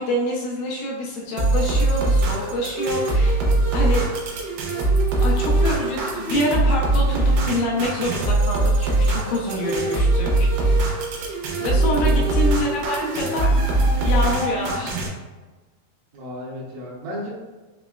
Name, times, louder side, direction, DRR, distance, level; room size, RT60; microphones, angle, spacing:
voice 1, 0.0-3.4 3.7-4.1 5.2-10.9 11.6-13.5 14.0-15.1, left 1 dB, 80° left, -2 dB, 2.0 m, -26 dB
sound 1, 1.4-15.1, right 2 dB, 90° right, 2.4 m, -21 dB
voice 2, 11.9-12.3 16.1-17.3, left 1 dB, 75° right, -5 dB, 2.1 m, -33 dB
5.7 x 2.0 x 2.3 m, 1.2 s
omnidirectional pair, 4.0 m